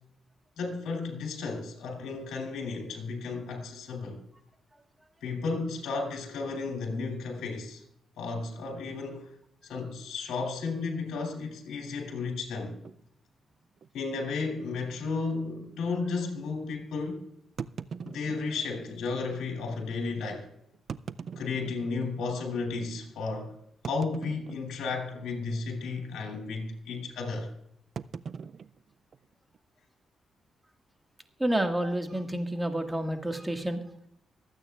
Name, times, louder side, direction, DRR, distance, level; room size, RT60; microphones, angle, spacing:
voice 1, 0.6-4.2 5.2-7.8 8.2-9.3 9.6-12.8 13.9-17.3 18.0-20.5 21.4-23.6 23.8-27.5, left 4 dB, 80° left, 3.1 m, -33 dB
sound 1, 12.8-13.0 13.8-13.9 14.2-14.3 14.9-15.0 17.6-18.8 19.6-19.7 20.7-22.2 22.7-22.8 23.8-24.9 25.2-25.6 25.8-26.2 28.0-29.6, right 6 dB, 60° right, 0.4 m, -41 dB
voice 2, 31.4-34.1, right 1 dB, 15° right, 1.7 m, -29 dB
24.0 x 8.9 x 2.4 m
cardioid pair, 65°, 0 cm